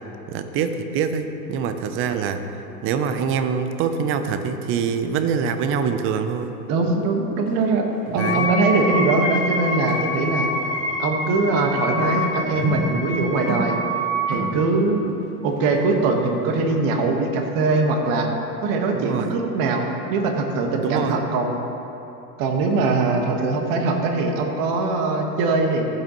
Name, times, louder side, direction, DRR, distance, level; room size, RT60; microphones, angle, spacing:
voice 1, 0.3-2.4 2.8-6.6 8.2-8.5 18.9-19.3 20.8-21.2, right 6 dB, 25° right, 9 dB, 0.5 m, -24 dB
voice 2, 6.7-7.9 8.1-10.5 11.0-13.8 14.3-15.1 15.4-18.3 18.6-19.8 20.1-21.6 22.4-25.9, right 3 dB, 40° right, 3 dB, 1.4 m, -22 dB
sound 1, 7.4-8.6 8.9-11.8 12.1-16.6, right 2 dB, 65° right, 2.2 m, -32 dB
Wind instrument woodwind instrument, 8.2-14.5, left 1 dB, 75° left, 1.8 m, -26 dB
15.5 x 7.1 x 3.0 m, 3.0 s
hypercardioid pair, 105°, 50 cm